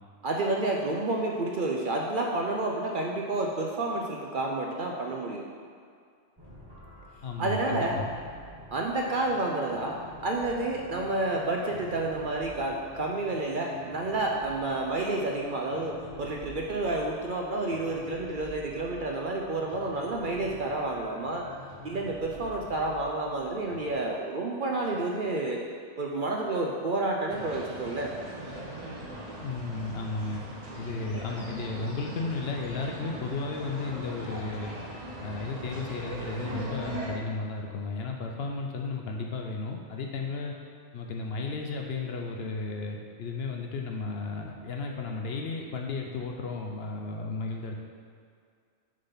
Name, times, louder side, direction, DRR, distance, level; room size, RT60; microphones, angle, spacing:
voice 1, 0.2-5.4 7.4-8.0 8.7-10.0 10.2-21.4 21.8-25.6 26.0-28.1, right 2 dB, 55° right, 0 dB, 0.6 m, -30 dB
sound 1, 6.4-23.9, equal, 20° right, 1.6 m, -48 dB
voice 2, 7.2-8.1 29.4-30.4 30.8-34.8 35.2-40.5 40.9-47.8, left 3 dB, 60° left, 1 dB, 0.8 m, -34 dB
sound 2, 27.3-37.1, right 1 dB, 35° right, 1.0 m, -40 dB
6.7 x 3.8 x 5.7 m, 2.2 s
omnidirectional pair, 1.3 m